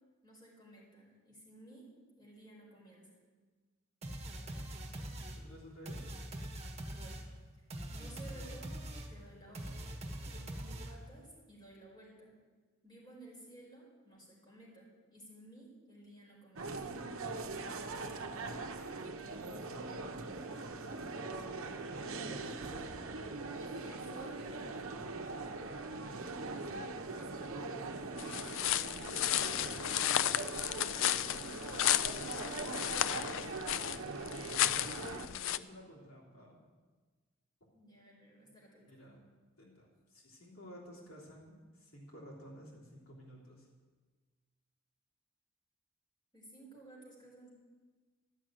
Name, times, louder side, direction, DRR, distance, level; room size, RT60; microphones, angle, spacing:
voice 1, 0.2-1.9 2.2-3.1 6.9-7.2 7.9-9.9 10.3-12.4 12.8-16.8 21.9-22.4 23.6-24.6 30.6-31.9 34.4-35.4 37.7-38.9 46.3-47.5, right 1 dB, 20° left, -4 dB, 4.8 m, -56 dB
sound 1, 4.0-11.2, right 1 dB, 30° right, 1.5 m, -43 dB
voice 2, 5.4-6.1 17.9-18.6 19.7-20.2 21.9-22.9 24.5-24.8 26.0-29.9 30.9-31.3 32.0-32.1 34.3-36.6 38.9-39.3 39.6-43.7, equal, 85° left, -4 dB, 3.2 m, -55 dB
sound 2, 16.6-35.3, right 3 dB, 75° right, 0.9 m, -41 dB
sound 3, 28.2-35.6, left 12 dB, 65° left, 0.4 m, -33 dB
12.5 x 6.3 x 9.0 m, 1.4 s
head